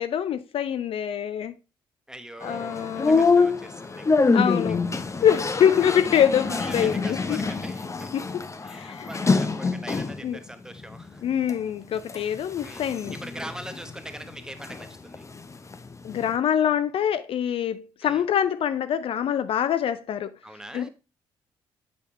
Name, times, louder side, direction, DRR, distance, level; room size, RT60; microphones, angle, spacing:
voice 1, 0.0-1.5 2.4-3.2 4.3-4.8 5.2-7.4 8.1-8.4 8.7-9.1 10.2-10.4 11.2-13.1 16.0-20.4 20.7-20.9, left 9 dB, 50° left, 0.5 m, -25 dB
voice 2, 2.1-4.4 4.7-4.8 6.5-8.1 8.6-11.2 12.2-12.3 12.6-15.3 18.0-18.2 20.4-20.9, right 1 dB, 5° right, 1.1 m, -42 dB
sound 1, 2.4-10.3 10.8-11.5 12.0-14.9 15.1-16.4, left 4 dB, 25° left, 0.8 m, -26 dB
8.2 x 5.2 x 3.1 m
figure-of-eight pair, 40°, 12 cm